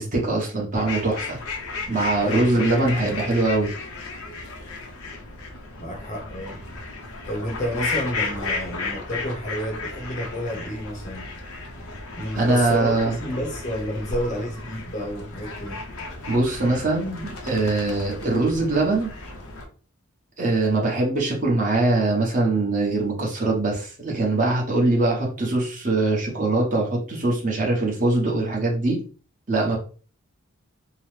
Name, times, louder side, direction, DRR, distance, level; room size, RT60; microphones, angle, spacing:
voice 1, 0.0-1.4 1.9-3.7 12.4-13.1 16.3-19.1 20.4-29.0 29.5-29.8, right 2 dB, 35° right, 0.9 m, -22 dB
sound 1, 0.7-19.7, left 3 dB, 85° left, 0.7 m, -34 dB
voice 2, 2.2-3.1 5.8-6.6 7.3-11.3 12.2-15.8, equal, 35° left, 0.6 m, -30 dB
2.9 x 2.0 x 3.1 m
head